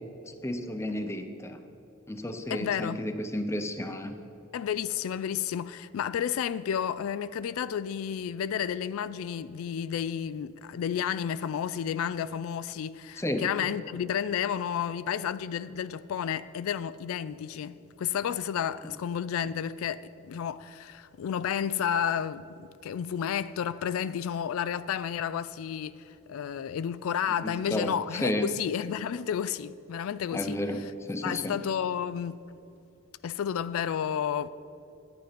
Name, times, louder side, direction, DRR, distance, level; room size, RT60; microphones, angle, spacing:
voice 1, 0.4-1.6 2.1-4.1 13.2-13.5 27.4-27.9 28.2-28.5 30.3-31.6, left 1 dB, 15° left, 0.6 m, -32 dB
voice 2, 2.5-3.0 4.5-30.9 31.2-32.4 33.2-34.5, left 8 dB, 85° left, 0.3 m, -31 dB
11.0 x 9.1 x 5.1 m
head